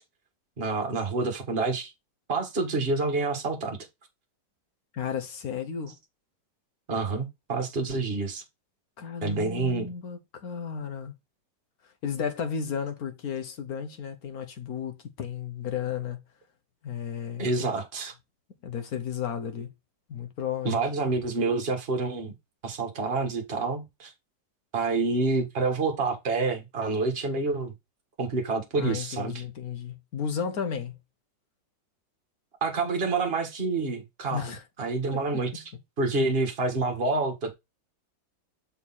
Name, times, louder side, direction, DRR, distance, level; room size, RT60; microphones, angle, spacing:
voice 1, 0.6-1.9 2.3-3.8 6.9-8.4 9.2-9.9 17.4-18.1 20.6-22.3 22.6-24.1 24.7-27.7 28.2-29.4 32.6-34.5 34.8-35.6 36.0-37.5, right 3 dB, 35° right, 1.8 m, -28 dB
voice 2, 4.9-5.9 9.0-11.1 12.0-16.2 16.8-17.5 18.6-19.7 20.1-20.8 28.8-31.0 34.3-34.6 35.5-35.6, left 7 dB, 55° left, 1.6 m, -33 dB
6.7 x 4.3 x 4.2 m
omnidirectional pair, 2.0 m